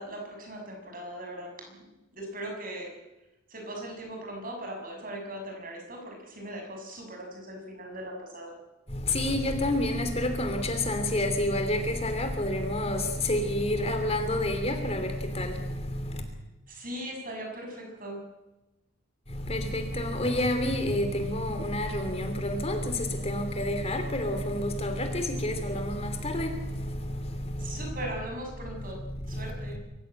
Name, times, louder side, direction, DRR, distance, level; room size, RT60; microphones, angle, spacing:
voice 1, 0.0-1.8 2.1-2.9 3.5-8.5 16.7-18.2 27.6-29.0 29.3-29.8, right 1 dB, 45° right, 6.5 m, -39 dB
voice 2, 8.9-16.2 19.3-28.1 28.7-29.8, left 1 dB, 30° left, 2.8 m, -29 dB
24.0 x 15.0 x 8.8 m
head